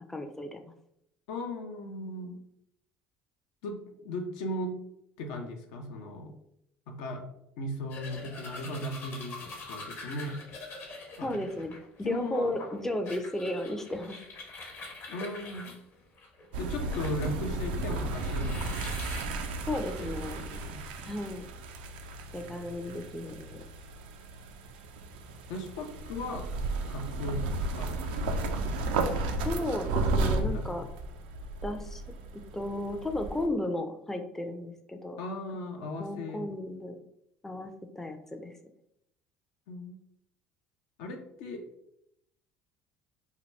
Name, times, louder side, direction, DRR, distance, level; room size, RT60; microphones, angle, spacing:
voice 1, 0.1-0.6 11.2-14.2 19.7-20.4 21.0-21.4 22.3-23.6 29.4-30.9 31.6-32.0 32.3-35.2 36.0-37.0 37.4-38.5, left 1 dB, 10° left, 5 dB, 0.4 m, -34 dB
voice 2, 1.3-2.4 3.6-4.8 5.2-6.3 6.9-7.2 7.6-10.4 11.2-11.4 12.0-12.5 15.1-15.7 16.6-19.0 19.7-21.1 25.5-26.5 26.9-27.4 27.7-28.4 30.2-30.7 35.2-36.4 39.7-40.0 41.0-41.6, left 1 dB, 75° left, 3 dB, 0.5 m, -37 dB
sound 1, 7.9-17.4 17.9-19.2, left 3 dB, 50° left, 0.9 m, -45 dB
sound 2, 16.5-33.5, right 2 dB, 80° right, 0.3 m, -34 dB
2.8 x 2.2 x 3.2 m, 0.76 s
hypercardioid pair, 70°, 5 cm